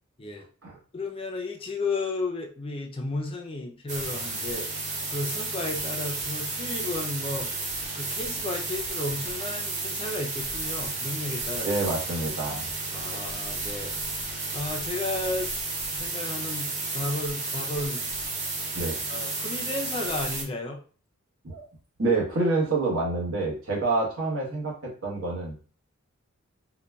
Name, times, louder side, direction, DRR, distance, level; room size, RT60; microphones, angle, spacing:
voice 1, 0.9-7.5 7.9-11.7 12.9-13.9 14.5-15.5 15.9-18.0 19.1-20.8, left 2 dB, 25° left, 2 dB, 0.4 m, -33 dB
sound 1, 3.9-20.4, right 3 dB, 35° right, 0.7 m, -32 dB
voice 2, 11.6-12.6 18.7-19.0 21.4-21.6 22.0-25.6, right 3 dB, 70° right, -3 dB, 1.1 m, -27 dB
3.8 x 2.3 x 2.2 m, 0.40 s
head